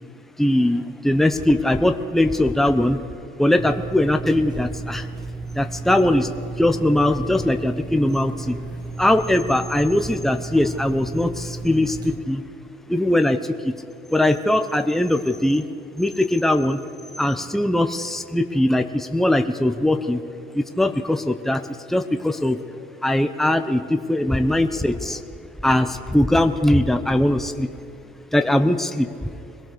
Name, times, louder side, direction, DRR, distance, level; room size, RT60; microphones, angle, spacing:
voice 1, 0.4-3.0 3.4-5.1 5.5-6.3 6.6-8.6 9.0-12.4 12.9-13.7 14.1-15.7 16.0-16.8 17.2-20.2 20.5-22.6 23.0-25.2 25.6-27.7 28.3-29.1, left 1 dB, ahead, 7 dB, 0.9 m, -20 dB
sound 1, 3.6-12.2, right 3 dB, 25° right, 1.6 m, -34 dB
24.0 x 18.0 x 6.7 m, 2.5 s
cardioid pair, 110°, 17 cm